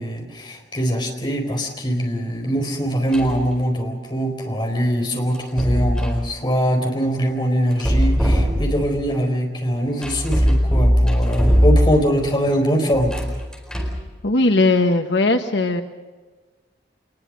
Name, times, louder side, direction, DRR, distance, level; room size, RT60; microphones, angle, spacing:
voice 1, 0.0-13.1, equal, 25° left, 2 dB, 4.4 m, -22 dB
sound 1, 3.1-3.4 5.3-6.2 7.7-9.0 10.0-12.2 12.9-14.1, equal, 5° left, 4.4 m, -19 dB
voice 2, 14.2-15.8, left 2 dB, 85° left, 6 dB, 1.3 m, -18 dB
26.0 x 21.0 x 6.4 m, 1.3 s
head